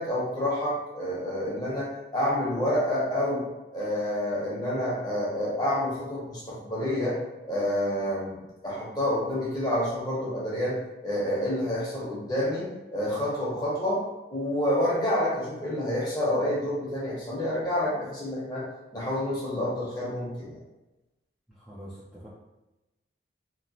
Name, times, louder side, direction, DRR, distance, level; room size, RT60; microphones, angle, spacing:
voice 1, 0.0-3.4 3.7-7.2 7.4-8.4 8.6-10.7 11.0-14.0 14.3-18.6 18.9-20.6, left 1 dB, 20° left, -7 dB, 0.8 m, -28 dB
voice 2, 21.5-22.3, equal, ahead, -11 dB, 0.4 m, -45 dB
2.9 x 2.1 x 2.6 m, 1.0 s
head